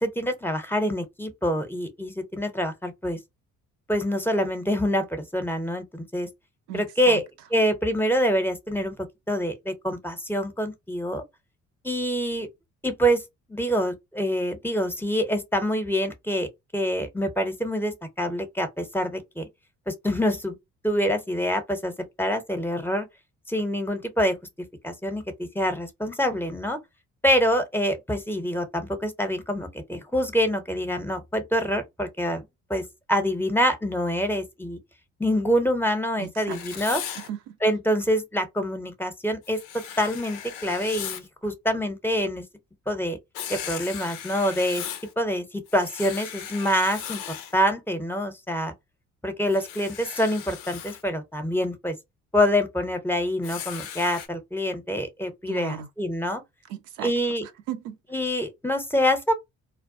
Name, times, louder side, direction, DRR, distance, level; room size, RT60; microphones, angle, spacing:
voice 1, 0.0-3.2 3.9-6.3 6.7-11.2 11.8-12.5 12.8-13.2 13.5-19.4 19.9-20.6 20.8-23.1 23.5-24.4 24.8-26.8 27.2-32.4 32.7-34.8 35.2-37.0 37.6-42.4 42.9-43.2 43.5-44.8 45.2-47.2 47.5-48.7 49.2-52.0 52.3-56.4 57.0-57.5 58.1-59.3, equal, 5° left, 0.7 m, -26 dB
voice 2, 6.7-7.2 36.2-36.9 37.1-37.6 55.5-55.9 56.7-57.1 57.7-58.0, right 10 dB, 80° right, 0.6 m, -36 dB
Writing, 36.5-37.3 39.4-41.3 43.3-45.1 45.7-47.6 49.4-51.0 53.4-54.3, left 9 dB, 85° left, 0.5 m, -37 dB
2.2 x 2.1 x 2.6 m
hypercardioid pair, 55°, 37 cm